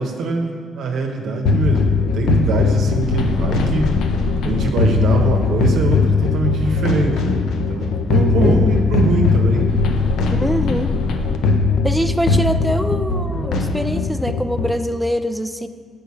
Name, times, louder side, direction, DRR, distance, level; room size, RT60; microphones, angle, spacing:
voice 1, 0.0-3.9 4.4-9.7, right 2 dB, 75° right, 1 dB, 0.9 m, -23 dB
sound 1, 1.5-14.8, left 4 dB, 80° left, 0.5 m, -19 dB
voice 2, 8.1-8.6 10.3-10.9 11.8-15.7, equal, 5° right, 9 dB, 0.4 m, -23 dB
7.0 x 5.2 x 4.7 m, 2.2 s
cardioid pair, 90°, 0 cm